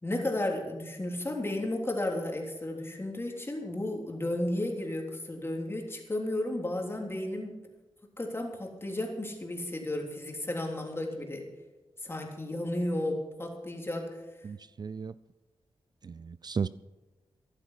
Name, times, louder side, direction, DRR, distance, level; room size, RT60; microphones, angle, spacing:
voice 1, 0.0-7.5 8.2-11.4 12.0-14.5, left 1 dB, 25° left, 1 dB, 3.4 m, -33 dB
voice 2, 14.4-15.1 16.0-16.7, right 6 dB, 45° right, 16 dB, 0.4 m, -34 dB
14.5 x 11.5 x 5.8 m, 1.1 s
wide cardioid pair, 85°, 10 cm